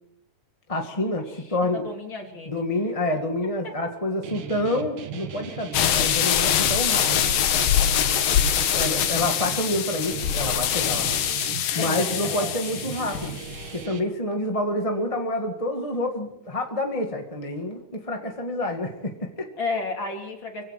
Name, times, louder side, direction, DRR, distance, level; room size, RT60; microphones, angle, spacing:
voice 1, 0.7-1.9 2.4-7.3 8.3-11.1 11.6-13.4 13.7-19.5, left 1 dB, 15° left, 3 dB, 1.4 m, -28 dB
voice 2, 1.7-2.5 11.7-12.5 19.6-20.6, left 3 dB, 35° left, 1 dB, 3.8 m, -32 dB
Guitar, 4.2-14.0, right 8 dB, 70° right, 3.2 m, -37 dB
sound 1, 5.7-13.7, left 9 dB, 90° left, 3.1 m, -24 dB
26.0 x 16.5 x 6.0 m, 0.78 s
omnidirectional pair, 3.9 m